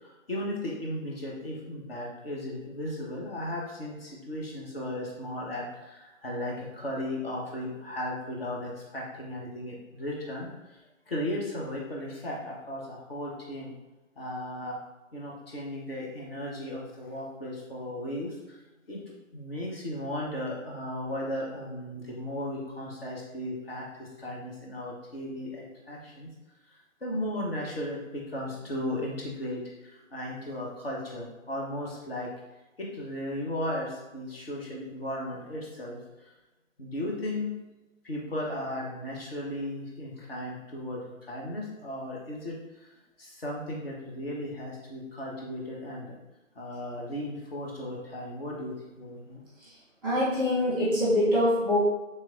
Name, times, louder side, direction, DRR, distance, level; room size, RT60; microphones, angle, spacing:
voice 1, 0.0-10.5 11.1-13.7 14.2-14.8 15.1-18.6 18.9-19.0 19.3-26.3 27.0-32.3 32.8-36.0 36.8-37.5 38.0-42.6 43.2-46.2 46.6-49.4, left 1 dB, 45° left, -3 dB, 0.9 m, -36 dB
voice 2, 50.0-51.8, left 1 dB, 15° right, -9 dB, 0.9 m, -24 dB
3.2 x 2.9 x 2.4 m, 1.1 s
figure-of-eight pair, 150°, 40 cm